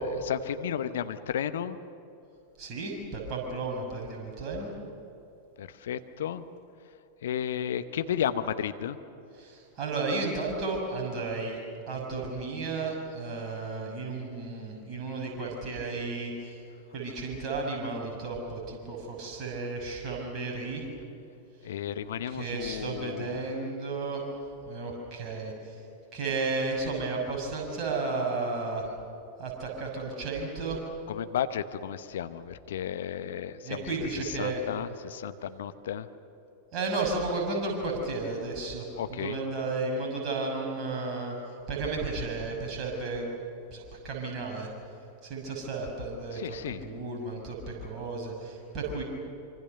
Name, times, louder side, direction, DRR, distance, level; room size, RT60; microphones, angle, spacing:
voice 1, 0.1-1.8 5.6-6.5 7.2-9.0 21.6-23.4 31.1-36.1 39.0-39.4 46.3-46.8, left 9 dB, 60° left, 11 dB, 1.0 m, -33 dB
voice 2, 2.6-4.7 9.4-11.6 11.9-16.6 16.9-20.9 22.3-24.3 24.6-25.8 26.1-28.9 29.4-30.8 33.6-34.6 36.7-43.3 43.7-44.7 45.2-46.6 46.8-49.0, right 3 dB, 35° right, -1 dB, 6.3 m, -33 dB
25.5 x 25.0 x 6.8 m, 2.8 s
figure-of-eight pair, 90°, 0 cm